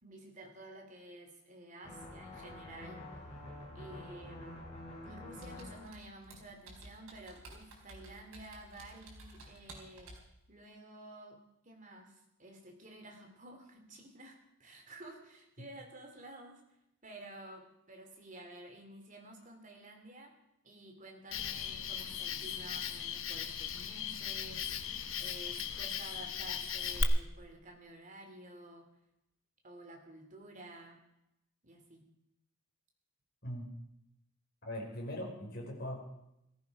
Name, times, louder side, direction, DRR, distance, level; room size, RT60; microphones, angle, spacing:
voice 1, 0.0-3.3 3.7-4.6 5.0-10.1 10.5-16.6 17.0-20.3 20.6-28.9 29.6-31.0 31.6-32.0, right 1 dB, 35° right, 3 dB, 3.0 m, -52 dB
sound 1, 1.8-5.9, left 1 dB, 30° left, 5.3 m, -47 dB
Computer keyboard, 5.4-10.3, right 1 dB, 90° right, 4.6 m, -53 dB
Cricket, 21.3-27.0, left 7 dB, 65° left, 1.1 m, -38 dB
voice 2, 34.6-36.0, equal, 45° left, -2 dB, 5.0 m, -40 dB
17.5 x 15.0 x 4.9 m, 0.83 s
head